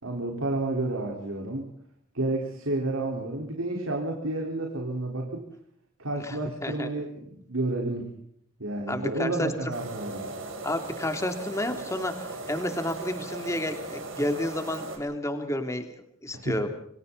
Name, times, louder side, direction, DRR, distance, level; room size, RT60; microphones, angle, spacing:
voice 1, 0.0-1.7 2.1-5.5 6.0-8.1 8.6-10.3 16.3-16.6, right 2 dB, 85° right, 1 dB, 4.6 m, -30 dB
voice 2, 6.3-6.9 8.9-9.5 10.6-15.9 16.2-16.7, left 1 dB, 15° left, 6 dB, 3.0 m, -30 dB
sound 1, 9.7-15.0, right 3 dB, 70° right, 7.9 m, -38 dB
29.5 x 25.0 x 4.2 m, 0.67 s
head